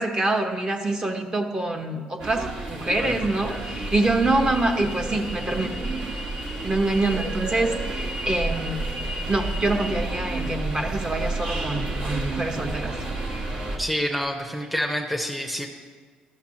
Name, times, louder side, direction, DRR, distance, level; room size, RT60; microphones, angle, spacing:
voice 1, 0.0-5.7 6.6-8.9 9.3-12.9, right 2 dB, 25° right, 3 dB, 1.0 m, -25 dB
sound 1, 2.2-13.8, right 2 dB, 65° right, 1.6 m, -30 dB
voice 2, 13.8-15.7, equal, ahead, 2 dB, 0.7 m, -27 dB
13.0 x 5.8 x 2.9 m, 1.5 s
supercardioid pair, 85°, 3 cm